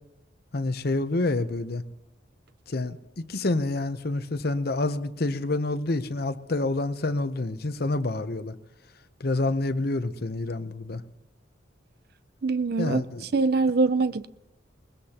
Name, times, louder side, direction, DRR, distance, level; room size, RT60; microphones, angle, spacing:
voice 1, 0.5-1.8 2.7-8.5 9.2-11.0 12.8-13.3, left 2 dB, 50° left, 0.7 m, -28 dB
voice 2, 12.4-13.0 13.3-14.3, right 3 dB, 55° right, 0.5 m, -23 dB
21.0 x 20.0 x 2.9 m
head